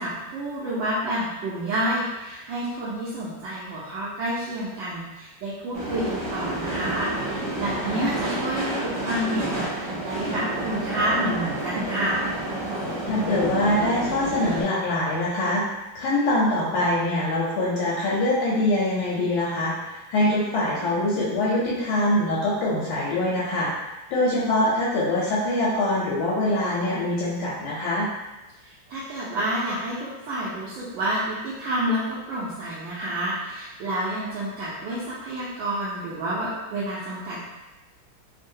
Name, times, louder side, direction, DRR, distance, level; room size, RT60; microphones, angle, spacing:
voice 1, 0.0-12.2 28.6-37.4, right 1 dB, 75° right, -8 dB, 1.2 m, -29 dB
sound 1, 5.7-14.6, right 1 dB, 40° right, 0.9 m, -30 dB
voice 2, 13.0-15.6 15.9-23.7 24.1-28.1, left 1 dB, 85° left, -7 dB, 1.4 m, -24 dB
3.6 x 2.0 x 2.6 m, 1.1 s
omnidirectional pair, 2.2 m